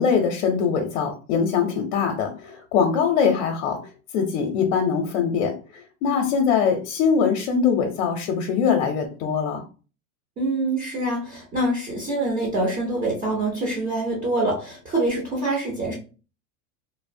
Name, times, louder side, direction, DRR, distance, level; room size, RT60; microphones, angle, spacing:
voice 1, 0.0-3.8 4.1-5.5 6.0-9.6, left 6 dB, 55° left, 3 dB, 0.6 m, -22 dB
voice 2, 10.4-15.9, right 2 dB, 20° right, -4 dB, 0.6 m, -25 dB
2.6 x 2.0 x 2.5 m, 0.35 s
supercardioid pair, 145°, 45 cm